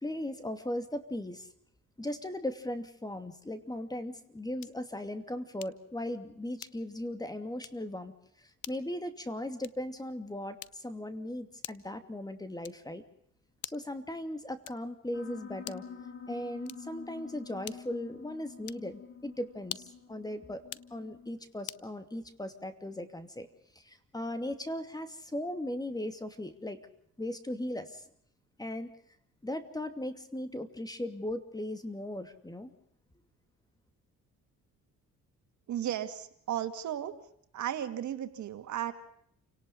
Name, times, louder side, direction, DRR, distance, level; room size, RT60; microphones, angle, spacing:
voice 1, 0.0-1.5 2.0-8.1 8.4-13.0 13.6-15.8 16.3-20.6 20.9-23.5 23.7-26.8 27.2-28.0 28.6-28.9 29.4-32.7, left 1 dB, 15° left, 9 dB, 2.7 m, -38 dB
sound 1, 4.6-4.9 5.6-5.9 6.6-7.0 7.6-7.9 8.6-8.9 9.6-9.9 10.6-11.0 11.6-12.0 12.6-13.0 13.6-14.0 14.6-15.0 15.6-16.0 16.6-17.0 17.6-18.0 18.6-18.9 19.6-20.1 20.6-20.9 21.7-21.9, left 15 dB, 80° left, 0.8 m, -46 dB
Piano, 15.1-21.3, left 6 dB, 45° left, 4.3 m, -48 dB
voice 2, 35.7-37.1 37.5-38.9, right 11 dB, 70° right, 8 dB, 2.4 m, -34 dB
29.0 x 18.5 x 5.4 m, 0.67 s
cardioid pair, 90°, 30 cm